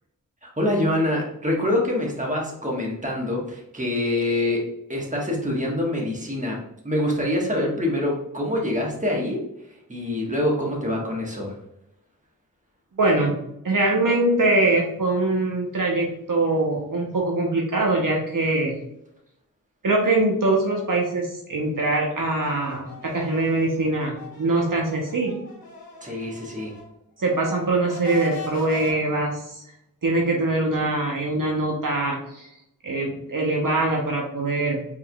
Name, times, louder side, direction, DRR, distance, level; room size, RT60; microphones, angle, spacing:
voice 1, 0.4-4.6 4.9-6.6 6.8-9.4 9.9-11.5 26.0-26.7, left 1 dB, 20° right, -1 dB, 1.3 m, -25 dB
voice 2, 13.0-13.4 13.6-18.8 19.8-25.4 27.2-29.6 30.0-32.5 32.8-34.9, right 2 dB, 65° right, -1 dB, 0.8 m, -23 dB
sound 1, 22.2-26.9 27.2-28.9, left 4 dB, 80° left, 1.0 m, -41 dB
4.8 x 3.6 x 2.3 m, 0.80 s
wide cardioid pair, 55°, 35 cm